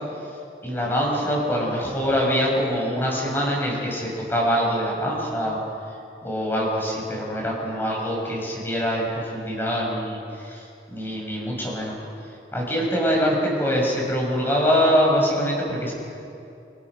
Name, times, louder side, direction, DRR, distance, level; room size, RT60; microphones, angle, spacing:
voice 1, 0.6-5.6 6.2-10.2 10.4-10.6 10.9-11.9 12.5-15.9, equal, 10° left, -2 dB, 6.8 m, -24 dB
28.5 x 26.5 x 6.3 m, 2.6 s
head